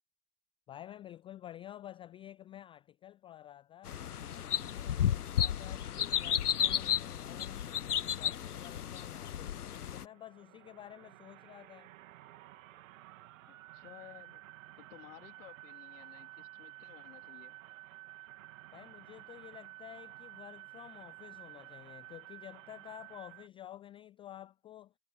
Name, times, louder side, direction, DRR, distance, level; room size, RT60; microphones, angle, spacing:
voice 1, 0.7-4.0 4.4-7.7 8.0-9.6 9.9-11.9 18.7-24.9, left 12 dB, 15° left, 0.3 m, -51 dB
sound 1, 3.9-10.0, left 9 dB, 85° left, 0.6 m, -33 dB
sound 2, 9.8-23.5, right 18 dB, 60° right, 3.0 m, -52 dB
voice 2, 13.5-14.4 14.8-17.5, left 18 dB, 55° left, 3.4 m, -55 dB
figure-of-eight pair, 85°, 44 cm